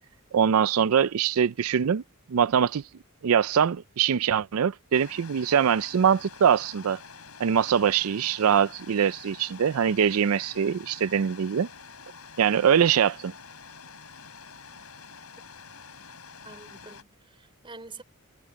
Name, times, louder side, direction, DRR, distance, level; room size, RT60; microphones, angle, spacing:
voice 1, 0.3-2.0 2.3-2.8 3.2-7.0 7.4-11.7 12.4-13.3, right 8 dB, 75° right, 0.4 m, -23 dB
sound 1, 4.9-17.0, left 5 dB, 80° left, 7.0 m, -47 dB
voice 2, 16.4-18.0, right 3 dB, 25° right, 3.8 m, -46 dB
head